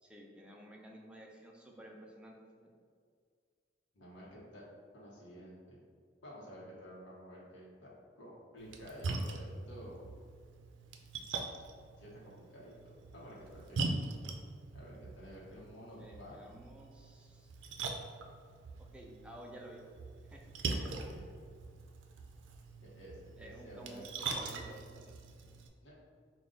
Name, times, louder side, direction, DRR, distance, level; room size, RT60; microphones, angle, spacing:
voice 1, 0.0-2.7 16.0-17.5 18.8-19.8 20.3-20.5 23.4-25.1, right 1 dB, 5° right, -1 dB, 0.4 m, -53 dB
voice 2, 3.9-4.7 4.9-5.8 6.2-10.0 12.0-13.9 14.7-16.4 20.7-21.3 22.8-24.1 25.8-25.9, equal, 80° left, -6 dB, 0.9 m, -51 dB
Splash splatter, 8.6-25.7, right 3 dB, 85° right, 0.4 m, -42 dB
3.8 x 2.3 x 3.7 m, 2.1 s
head